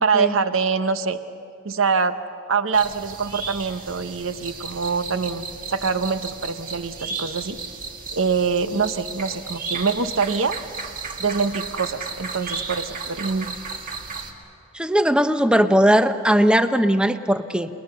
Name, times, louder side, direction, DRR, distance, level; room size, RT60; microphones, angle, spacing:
voice 1, 0.0-1.2 1.6-2.2 2.5-7.6 8.1-10.6 11.2-13.6, right 5 dB, 65° right, 10 dB, 0.9 m, -24 dB
sound 1, 2.7-14.3, right 4 dB, 40° right, 2.0 m, -34 dB
voice 2, 14.7-17.7, equal, 5° right, 10 dB, 0.7 m, -18 dB
29.5 x 20.0 x 6.7 m, 2.7 s
head